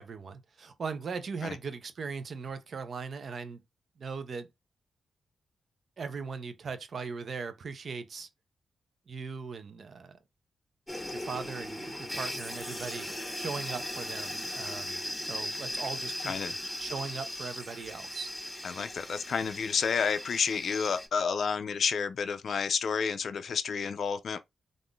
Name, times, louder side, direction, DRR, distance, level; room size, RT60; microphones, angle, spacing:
voice 1, 0.0-3.6 4.0-4.5 6.0-8.3 9.1-10.2 11.1-13.1 13.4-16.3 16.8-18.3, right 5 dB, 65° right, 0.5 m, -39 dB
sound 1, 10.9-21.1, left 1 dB, 5° left, 1.4 m, -38 dB
voice 2, 18.6-24.4, left 6 dB, 70° left, 0.3 m, -30 dB
3.6 x 2.5 x 2.3 m
cardioid pair, 55°, 0 cm